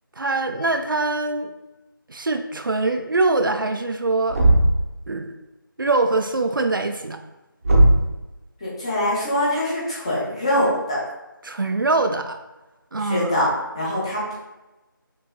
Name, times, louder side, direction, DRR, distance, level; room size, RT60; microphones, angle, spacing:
voice 1, 0.2-1.5 2.1-4.4 5.1-5.4 5.8-7.2 11.4-12.4 12.9-13.3, right 3 dB, 70° right, 7 dB, 0.4 m, -23 dB
Thump thud, 4.3-4.9 7.6-8.2, right 1 dB, 40° right, 0.7 m, -16 dB
voice 2, 8.6-11.0 13.0-13.5 13.7-14.4, left 1 dB, 15° left, -7 dB, 0.7 m, -23 dB
5.9 x 2.7 x 2.3 m, 1.0 s
figure-of-eight pair, 165°, 12 cm